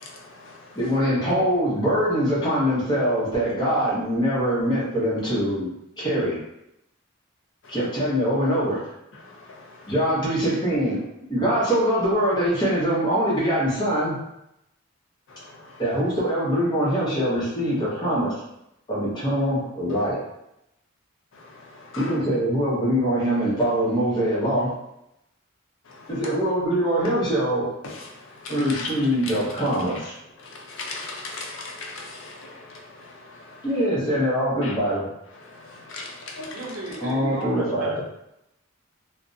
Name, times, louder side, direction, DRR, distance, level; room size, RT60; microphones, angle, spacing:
voice 1, 0.0-0.8 7.6-7.8 9.2-9.9 15.3-15.8 21.3-22.2 25.9-26.1 27.8-29.3 30.4-33.7 34.6-34.7 35.4-36.6, left 3 dB, 70° left, 0.5 m, -39 dB
voice 2, 0.7-6.4 7.7-8.8 9.9-11.0 11.3-14.2 15.8-18.3 18.9-20.2 22.0-24.7 26.1-27.7 28.5-30.1 33.6-35.1 37.0-38.0, equal, 20° left, 0.8 m, -23 dB
voice 3, 36.5-38.0, right 1 dB, 85° right, 0.6 m, -34 dB
2.4 x 2.0 x 2.6 m
head